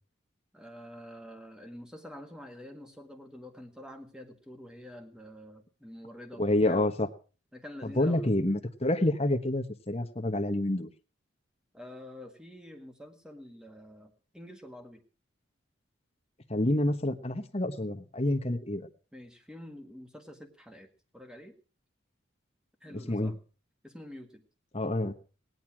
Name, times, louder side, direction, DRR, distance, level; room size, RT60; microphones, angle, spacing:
voice 1, 0.5-6.9 7.5-8.3 11.7-15.0 19.1-21.5 22.8-23.4 23.8-24.4, left 1 dB, 5° right, 5 dB, 1.7 m, -47 dB
voice 2, 6.4-7.1 7.8-10.9 16.5-18.9 23.1-23.3 24.7-25.1, left 1 dB, 30° left, 5 dB, 1.2 m, -28 dB
17.5 x 10.5 x 6.0 m, 0.39 s
head